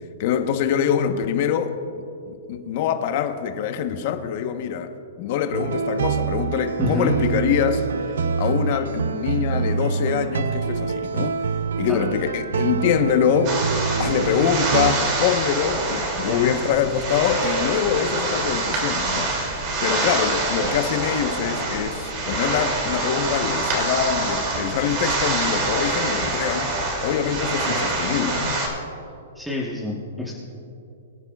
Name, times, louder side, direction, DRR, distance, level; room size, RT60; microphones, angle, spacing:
voice 1, 0.2-1.8 2.3-4.9 5.2-8.1 8.4-11.4 11.8-13.6 14.0-19.3 19.8-26.7 27.0-28.6, left 8 dB, 45° left, 7 dB, 1.0 m, -24 dB
sound 1, 5.5-14.9, right 6 dB, 85° right, 0.5 m, -25 dB
voice 2, 6.8-7.1 11.9-12.0 16.3-16.5 19.8-20.0 27.4-27.8 29.3-30.3, left 2 dB, ahead, -4 dB, 1.2 m, -28 dB
sound 2, 13.4-28.7, right 2 dB, 35° right, 2.6 m, -25 dB
24.0 x 9.5 x 2.4 m, 2.7 s
hypercardioid pair, 160°, 0 cm